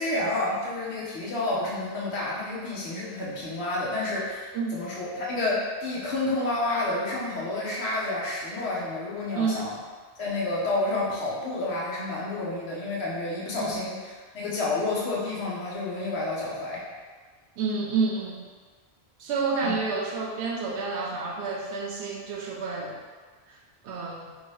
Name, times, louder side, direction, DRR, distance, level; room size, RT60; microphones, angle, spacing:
voice 1, 0.0-9.8 10.2-14.0 14.3-16.8 19.6-19.8, left 2 dB, 75° left, -5 dB, 1.0 m, -29 dB
voice 2, 17.6-18.4 19.2-23.0 23.5-23.6 23.8-24.3, right 4 dB, 85° right, -1 dB, 0.9 m, -29 dB
2.7 x 2.7 x 3.1 m, 1.5 s
omnidirectional pair, 1.1 m